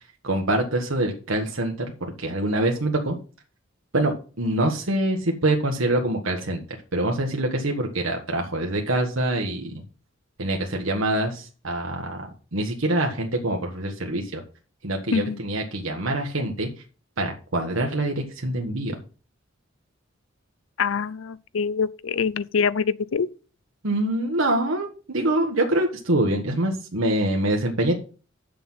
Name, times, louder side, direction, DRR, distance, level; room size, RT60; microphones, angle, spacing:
voice 1, 0.2-3.2 3.9-6.6 6.9-9.8 10.4-14.4 14.8-16.7 17.2-19.0 23.8-27.9, right 1 dB, 85° right, 1.5 m, -25 dB
voice 2, 20.8-23.3, left 5 dB, 80° left, 0.5 m, -24 dB
7.9 x 6.8 x 5.6 m
head